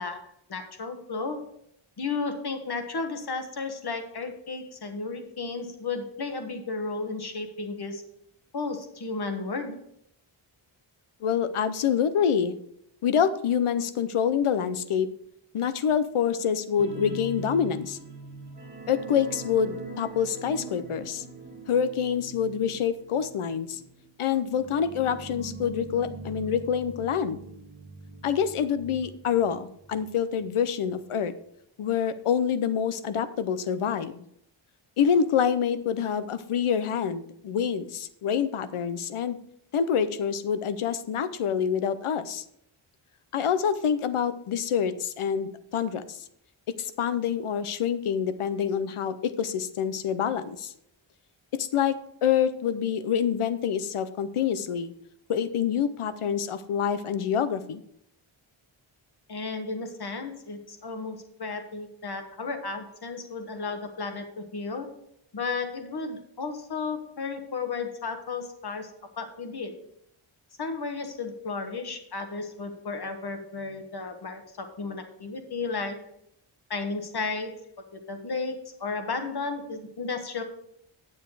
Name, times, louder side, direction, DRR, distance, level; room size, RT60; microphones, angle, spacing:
voice 1, 0.0-1.4 2.0-8.0 8.5-9.8 59.3-64.9 65.3-69.7 70.6-76.1 76.7-77.6 77.9-80.4, left 4 dB, 50° left, 6 dB, 1.4 m, -33 dB
voice 2, 11.2-12.6 13.0-15.1 15.5-18.0 18.9-21.2 21.7-23.8 24.2-27.4 28.2-31.3 31.8-34.2 35.0-39.4 39.7-42.4 43.3-46.2 46.7-50.7 51.5-52.0 52.2-54.9 55.3-57.8, left 8 dB, 80° left, 13 dB, 0.8 m, -26 dB
sound 1, 16.8-30.0 30.3-30.5 30.9-31.0, right 3 dB, 20° right, 1.3 m, -43 dB
9.2 x 7.3 x 4.8 m, 0.74 s
wide cardioid pair, 135°, 50 cm